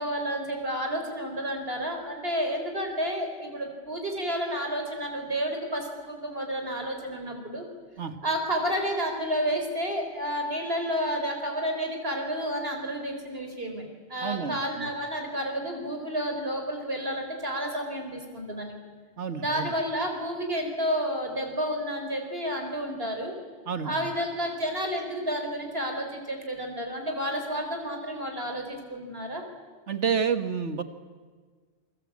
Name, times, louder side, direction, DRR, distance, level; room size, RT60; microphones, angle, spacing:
voice 1, 0.0-7.6 8.2-13.8 14.1-18.7 19.4-23.3 23.8-29.4, equal, 60° right, 3 dB, 4.3 m, -30 dB
voice 2, 14.2-14.9 19.2-19.7 23.7-24.1 29.9-30.8, right 6 dB, 85° right, 9 dB, 1.9 m, -29 dB
28.0 x 24.0 x 8.5 m, 1.5 s
omnidirectional pair, 1.2 m